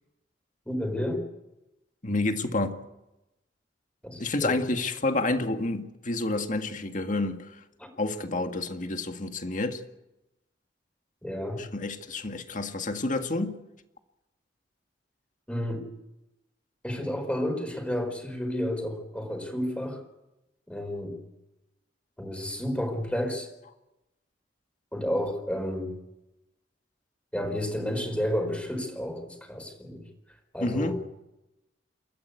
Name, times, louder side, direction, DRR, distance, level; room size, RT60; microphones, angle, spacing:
voice 1, 0.7-1.2 4.0-4.6 7.8-7.9 11.2-11.6 15.5-15.9 16.8-20.0 20.7-21.2 22.2-23.5 24.9-25.9 27.3-30.1 30.5-31.0, equal, 5° left, 4.6 m, -31 dB
voice 2, 2.0-2.8 4.2-7.6 8.0-9.8 11.6-13.6 30.6-31.0, left 2 dB, 45° left, 1.9 m, -29 dB
29.0 x 14.0 x 8.3 m
head